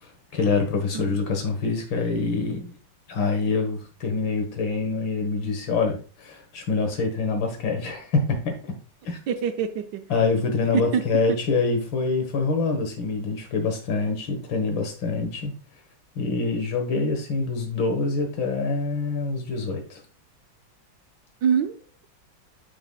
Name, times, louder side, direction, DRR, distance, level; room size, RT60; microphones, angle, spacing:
voice 1, 0.3-2.8 3.1-8.5 9.1-9.2 10.1-15.5 16.2-20.0, left 4 dB, 85° left, 2.1 m, -25 dB
voice 2, 9.3-10.1 10.7-11.4 21.4-21.7, right 7 dB, 70° right, 1.3 m, -25 dB
8.7 x 4.9 x 2.3 m
omnidirectional pair, 2.0 m